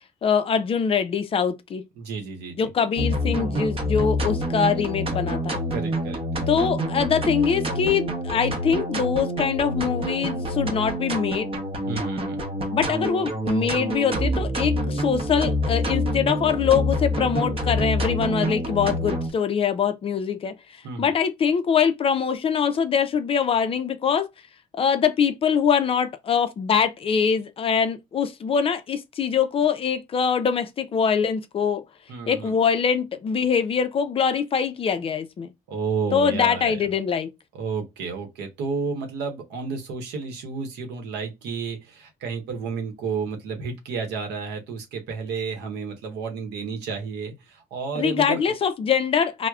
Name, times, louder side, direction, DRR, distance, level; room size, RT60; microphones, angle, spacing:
voice 1, 0.2-1.8 2.6-5.6 6.5-11.5 12.7-20.6 21.0-24.3 24.7-31.8 32.3-35.5 36.1-37.3 47.9-49.5, left 7 dB, 35° left, 0.4 m, -23 dB
voice 2, 2.0-2.7 5.7-6.2 11.9-12.5 20.8-21.1 32.1-32.5 35.7-36.9 37.5-48.4, right 5 dB, 85° right, 0.8 m, -31 dB
sound 1, 3.0-19.3, equal, 35° right, 0.8 m, -27 dB
4.6 x 2.1 x 2.3 m
cardioid pair, 110°, 17 cm